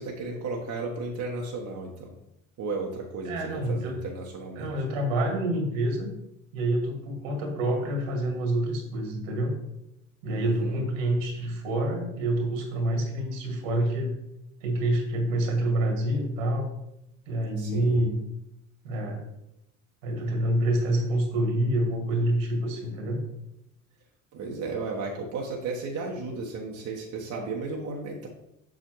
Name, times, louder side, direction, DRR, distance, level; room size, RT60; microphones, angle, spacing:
voice 1, 0.0-2.1 2.6-3.3 3.7-4.7 10.4-10.8 17.6-18.0 24.3-28.3, right 3 dB, 45° right, -1 dB, 1.3 m, -34 dB
voice 2, 3.2-4.0 4.6-6.1 6.5-9.5 10.2-14.1 14.6-16.7 17.3-18.2 18.8-19.2 20.0-23.2, right 1 dB, 70° right, 2 dB, 2.2 m, -27 dB
7.5 x 6.5 x 3.1 m, 0.84 s
figure-of-eight pair, 65°, 40 cm